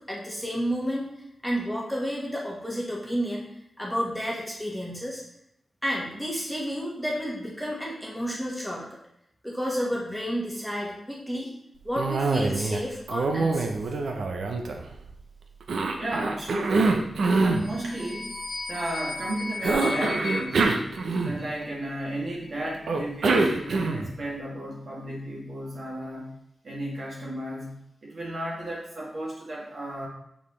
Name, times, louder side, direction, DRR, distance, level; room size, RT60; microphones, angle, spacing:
voice 1, 0.1-1.1 1.4-3.5 3.8-5.2 5.8-8.9 9.4-11.5 11.8-13.8, equal, ahead, -4 dB, 1.5 m, -31 dB
Cough, 11.9-12.8 13.1-15.1 15.7-17.6 19.6-21.6 22.9-24.2, right 3 dB, 80° right, 0.7 m, -25 dB
voice 2, 16.0-17.1 17.4-18.3 18.7-20.7 21.2-26.4 26.6-30.1, right 1 dB, 60° right, -4 dB, 2.3 m, -34 dB
sound 1, 17.4-21.7, left 3 dB, 35° left, 0.9 m, -36 dB
6.3 x 5.5 x 3.2 m, 0.76 s
wide cardioid pair, 100°, 0 cm